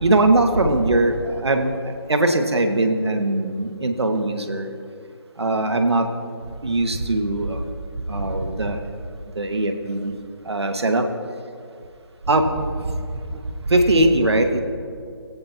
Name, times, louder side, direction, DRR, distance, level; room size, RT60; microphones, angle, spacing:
voice 1, 0.0-1.8 2.1-4.7 5.4-6.1 6.6-7.6 8.1-8.8 9.4-10.1 10.5-11.1 12.3-12.5 13.7-14.6, right 2 dB, 80° right, 5 dB, 1.9 m, -20 dB
21.0 x 16.5 x 3.1 m, 2.4 s
figure-of-eight pair, 160°, 14 cm